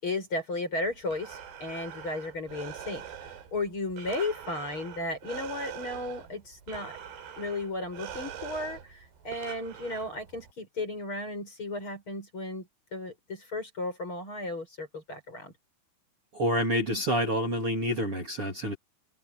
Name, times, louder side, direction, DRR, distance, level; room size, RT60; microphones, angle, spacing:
voice 1, 0.0-3.0 3.5-6.9 7.4-15.5, left 2 dB, 30° left, 8.2 m, -34 dB
Breathing, 0.9-10.5, right 8 dB, 75° right, 6.2 m, -44 dB
voice 2, 16.3-18.8, equal, 35° right, 3.8 m, -28 dB
omnidirectional pair, 4.9 m